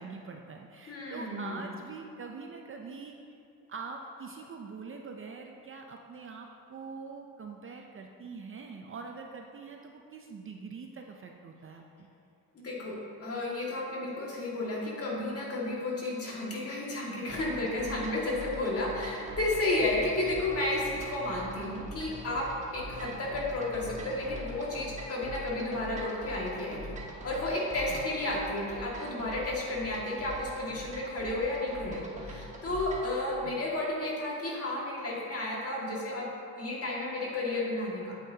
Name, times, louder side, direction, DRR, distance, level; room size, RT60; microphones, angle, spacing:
voice 1, 0.0-3.2 3.7-12.1 27.9-28.1 33.4-33.6, right 4 dB, 35° right, 2 dB, 0.5 m, -44 dB
voice 2, 0.9-1.7 12.6-22.5 22.7-26.9 27.2-36.3 36.6-38.1, left 2 dB, 40° left, -4 dB, 2.0 m, -32 dB
sound 1, 17.3-33.2, right 1 dB, 20° right, 1.3 m, -44 dB
sound 2, 19.3-24.4, right 4 dB, 60° right, 0.9 m, -49 dB
9.0 x 8.2 x 2.8 m, 2.5 s
cardioid pair, 115°, 37 cm